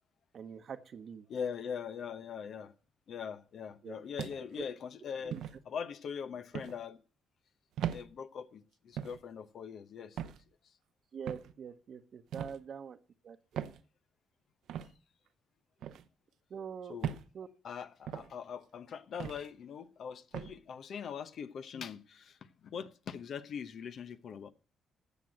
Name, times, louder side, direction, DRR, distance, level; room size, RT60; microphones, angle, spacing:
voice 1, 0.3-1.3 3.8-4.0 4.6-4.7 5.2-5.4 11.1-13.0 13.2-13.4 16.5-17.0 17.3-17.5, right 7 dB, 55° right, 1.0 m, -44 dB
voice 2, 1.3-2.7 3.1-5.4 5.6-7.0 7.9-10.3 10.6-10.7 16.9-17.2 17.6-24.5, left 7 dB, 60° left, 0.9 m, -42 dB
sound 1, 4.2-4.6 5.3-5.6 6.5-6.8 7.8-8.0 9.0-9.2 10.2-10.4 11.3-11.5 12.3-12.6 13.5-13.8 14.7-14.9 15.8-16.0 17.0-17.3 18.1-18.3 19.2-19.5 20.3-20.5, right 9 dB, 80° right, 0.8 m, -38 dB
15.0 x 6.4 x 7.7 m
cardioid pair, 90°, 0 cm